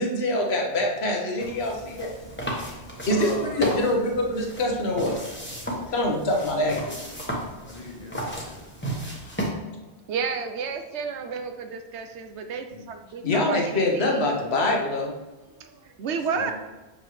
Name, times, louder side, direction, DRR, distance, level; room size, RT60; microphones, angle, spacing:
voice 1, 0.0-2.1 3.1-5.2 5.7-7.0 13.2-15.2, left 1 dB, 70° left, 1 dB, 1.4 m, -25 dB
sound 1, 1.4-9.5, equal, 10° left, 1.1 m, -34 dB
voice 2, 2.1-3.6 5.6-5.7 7.9-8.1 11.7-11.8 12.3-13.2 15.4-16.1, right 2 dB, 20° right, 0 dB, 0.9 m, -52 dB
voice 3, 3.1-4.0 5.9-6.4 7.6-8.9 12.7-12.8 16.2-16.5, left 3 dB, 35° left, -1 dB, 1.3 m, -40 dB
voice 4, 10.1-14.2 16.0-16.5, right 6 dB, 80° right, 6 dB, 1.0 m, -31 dB
7.0 x 5.4 x 3.2 m, 1.1 s
omnidirectional pair, 1.1 m